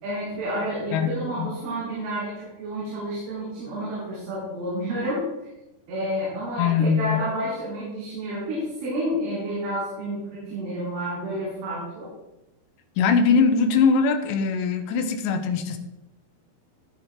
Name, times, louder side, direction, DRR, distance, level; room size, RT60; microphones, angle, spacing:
voice 1, 0.0-5.2 5.9-12.1, right 1 dB, 90° right, -9 dB, 5.7 m, -30 dB
voice 2, 0.9-1.5 6.6-7.2 13.0-15.8, left 5 dB, 80° left, 7 dB, 3.0 m, -21 dB
16.0 x 5.5 x 3.7 m, 0.97 s
omnidirectional pair, 5.4 m